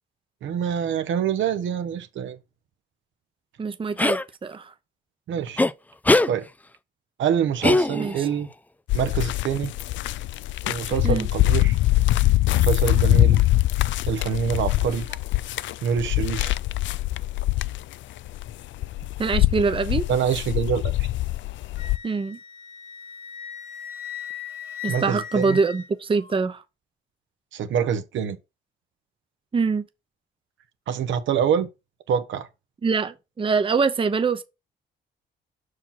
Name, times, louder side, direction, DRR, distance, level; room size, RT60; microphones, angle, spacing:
voice 1, 0.4-2.4 5.3-5.7 6.3-6.5 7.2-8.5 8.9-9.7 10.6-11.8 12.5-13.4 14.1-15.0 15.8-16.5 20.1-21.1 24.9-25.6 27.5-28.4 30.9-31.7 32.1-32.5, right 8 dB, 75° right, 1.0 m, -25 dB
voice 2, 3.6-4.7 7.9-8.3 11.0-11.3 19.2-20.0 22.0-22.4 24.8-26.6 29.5-29.8 32.8-34.4, right 4 dB, 25° right, 0.8 m, -24 dB
sound 1, 4.0-4.2 5.6-5.7 6.1-6.3 7.6-8.3, left 2 dB, 10° left, 0.4 m, -20 dB
sound 2, 8.9-22.0, left 16 dB, 70° left, 0.4 m, -23 dB
Wind instrument woodwind instrument, 21.8-26.3, left 8 dB, 85° left, 1.5 m, -38 dB
5.8 x 4.9 x 5.8 m
cardioid pair, 90°, 20 cm